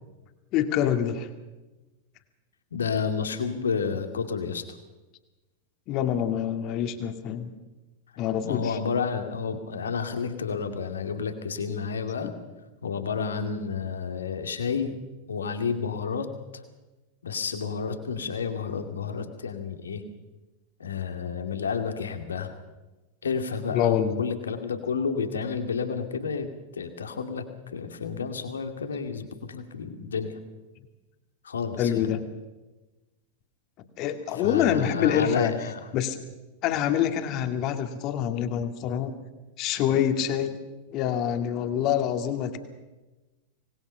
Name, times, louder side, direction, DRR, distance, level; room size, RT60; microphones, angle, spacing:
voice 1, 0.5-1.3 5.9-7.5 8.2-8.7 12.2-12.3 23.7-24.2 31.8-32.2 34.0-35.5 35.9-36.2 36.6-39.1 39.6-40.6 40.9-42.6, left 9 dB, 40° left, 7 dB, 2.3 m, -26 dB
voice 2, 2.7-4.8 8.4-12.3 12.8-15.0 15.3-16.3 16.5-16.6 17.2-20.0 20.8-22.5 23.2-27.4 27.7-30.4 31.4-32.1 34.3-35.9, left 5 dB, 70° left, 7 dB, 2.4 m, -30 dB
25.5 x 20.0 x 5.7 m, 1.1 s
figure-of-eight pair, 90°, 0 cm